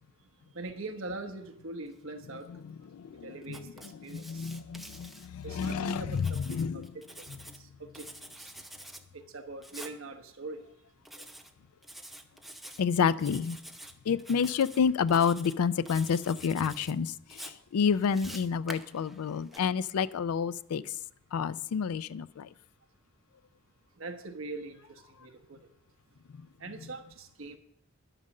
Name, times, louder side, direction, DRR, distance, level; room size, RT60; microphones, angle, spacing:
voice 1, 0.5-2.5 3.2-3.6 4.0-4.5 5.4-6.4 6.7-7.0 7.6-8.1 8.4-8.5 9.1-10.6 24.0-25.6 26.6-27.6, right 2 dB, 65° right, 7 dB, 1.1 m, -42 dB
voice 2, 2.9-3.6 4.1-6.9 12.8-13.6 14.1-20.9 21.3-22.5, left 6 dB, 90° left, 16 dB, 0.4 m, -29 dB
Writing, 3.4-5.7 6.1-7.6 7.9-9.0 9.6-10.0 11.1-11.5 11.8-12.8 13.2-13.9 14.2-14.8 15.1-15.6 15.9-16.9 17.3-19.6, right 1 dB, ahead, 0.6 m, -47 dB
11.0 x 9.0 x 6.5 m, 0.72 s
head